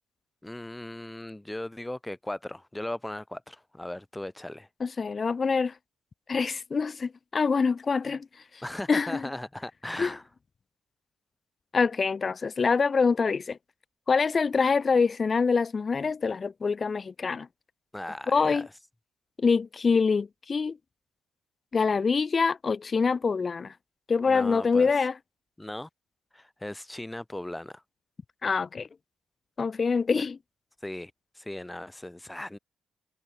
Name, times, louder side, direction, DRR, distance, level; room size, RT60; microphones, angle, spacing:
voice 1, 0.4-4.7 8.6-10.2 17.9-18.6 24.3-25.1 25.6-25.9 26.3-27.8 30.8-32.6, left 1 dB, 10° left, 0.9 m, -38 dB
voice 2, 4.8-5.7 6.3-8.3 8.9-9.2 10.0-10.1 11.7-13.6 14.1-17.5 18.3-18.7 19.4-20.8 21.7-23.7 24.1-25.1 28.4-28.9 29.6-30.4, left 5 dB, 35° left, 1.0 m, -25 dB
cardioid pair, 90°, 0 cm